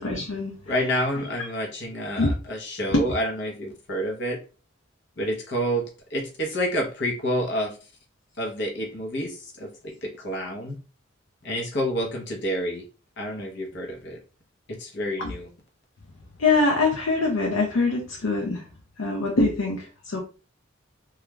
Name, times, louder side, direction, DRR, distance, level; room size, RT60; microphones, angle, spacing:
voice 1, 0.0-1.3 2.2-2.3 2.9-3.1 15.2-15.4 16.4-18.6 19.0-20.2, left 3 dB, 85° left, 0 dB, 0.6 m, -24 dB
voice 2, 0.7-4.4 5.2-7.8 8.4-10.8 11.4-12.8 13.2-14.2 14.7-15.5, equal, 60° left, 1 dB, 0.8 m, -29 dB
2.4 x 2.3 x 3.0 m, 0.34 s
head